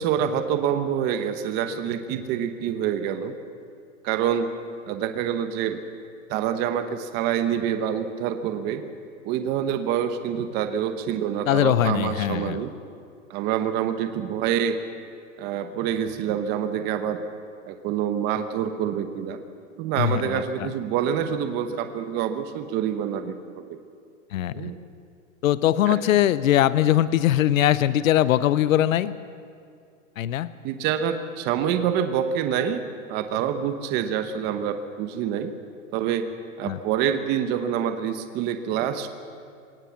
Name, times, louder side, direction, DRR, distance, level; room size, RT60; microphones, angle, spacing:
voice 1, 0.0-3.3 4.0-4.5 4.9-5.8 6.3-8.8 9.2-12.7 13.3-14.8 15.4-17.2 17.7-19.4 19.8-23.8 24.5-24.7 25.9-26.2 30.6-32.8 33.1-35.5 35.9-36.3 36.6-39.1, right 9 dB, 25° right, 9 dB, 0.9 m, -26 dB
voice 2, 11.5-12.6 20.0-20.7 24.3-24.7 25.4-29.1 30.2-30.5 36.7-36.8, left 12 dB, 90° left, 16 dB, 0.8 m, -21 dB
22.5 x 18.5 x 7.2 m, 2.3 s
supercardioid pair, 160°, 39 cm